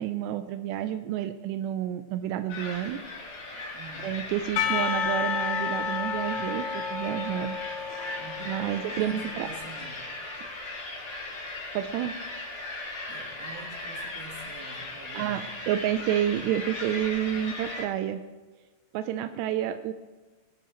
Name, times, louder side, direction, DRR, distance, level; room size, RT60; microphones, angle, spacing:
voice 1, 0.0-3.0 4.0-7.5 8.4-9.5 11.7-12.1 15.2-18.2 18.9-19.9, right 11 dB, 90° right, 9 dB, 2.8 m, -29 dB
sound 1, 2.5-17.9, left 2 dB, 45° left, 3.3 m, -38 dB
voice 2, 3.7-4.2 8.2-10.1 13.1-15.5, right 3 dB, 65° right, 2 dB, 3.2 m, -46 dB
Percussion / Church bell, 4.6-9.6, left 6 dB, 70° left, 2.3 m, -31 dB
19.5 x 13.0 x 3.0 m, 1.2 s
omnidirectional pair, 4.8 m